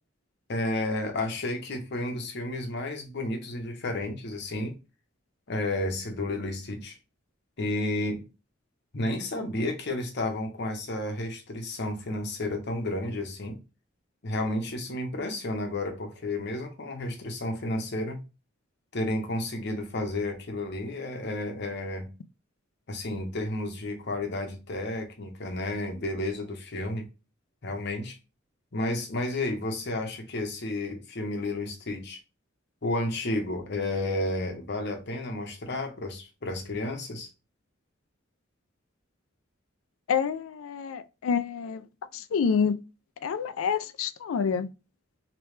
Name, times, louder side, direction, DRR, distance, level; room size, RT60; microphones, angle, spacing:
voice 1, 0.5-4.8 5.5-7.0 7.6-8.2 8.9-13.6 14.2-18.2 18.9-22.1 22.9-27.1 27.6-28.2 28.7-32.2 32.8-37.3, left 1 dB, 55° left, 0.9 m, -31 dB
voice 2, 40.1-41.8 42.1-42.8 43.2-44.7, left 6 dB, 85° left, 0.4 m, -27 dB
3.2 x 2.9 x 3.1 m
head